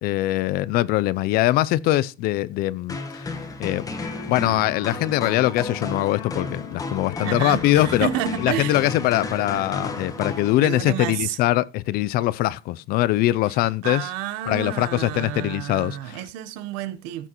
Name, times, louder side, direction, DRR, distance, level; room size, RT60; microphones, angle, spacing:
voice 1, 0.0-3.3 3.6-3.9 4.3-8.1 8.4-14.1 14.5-16.2, left 15 dB, 50° left, 0.4 m, -22 dB
sound 1, 2.9-11.0, left 2 dB, 15° left, 1.3 m, -33 dB
sound 2, 3.8-10.1, left 6 dB, 75° left, 2.0 m, -40 dB
voice 2, 7.2-8.8 10.6-11.4 13.8-17.3, right 11 dB, 80° right, 0.9 m, -30 dB
14.5 x 6.0 x 3.0 m
cardioid pair, 155°, 20 cm